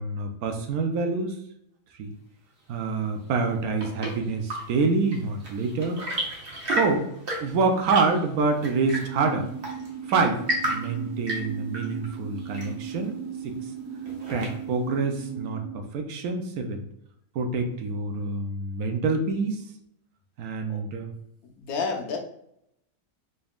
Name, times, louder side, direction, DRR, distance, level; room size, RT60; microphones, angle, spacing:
voice 1, 0.0-1.4 2.0-2.1 2.7-6.0 6.7-7.1 7.4-9.5 10.1-13.1 13.4-13.6 14.3-16.8 17.3-19.6 20.4-21.1, right 4 dB, 75° right, 4 dB, 1.1 m, -26 dB
Chirp tweet / Engine / Tap, 3.4-14.9, right 1 dB, 40° right, 1.1 m, -34 dB
sound 1, 8.8-15.7, right 8 dB, 25° right, 0.6 m, -36 dB
voice 2, 21.4-22.2, left 4 dB, 75° left, 4 dB, 1.1 m, -30 dB
4.0 x 3.4 x 2.4 m, 0.74 s
omnidirectional pair, 1.6 m